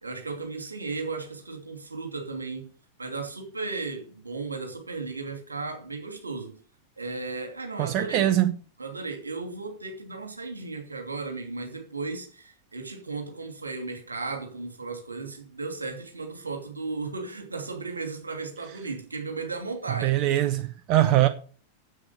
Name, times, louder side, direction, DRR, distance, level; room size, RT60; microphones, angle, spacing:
voice 1, 0.0-2.7 3.0-6.6 7.0-8.4 8.8-20.2, right 3 dB, 80° right, 2.7 m, -35 dB
voice 2, 7.8-8.6 20.0-21.3, right 14 dB, 40° right, 0.9 m, -22 dB
10.0 x 8.2 x 6.7 m
figure-of-eight pair, 90°, 0 cm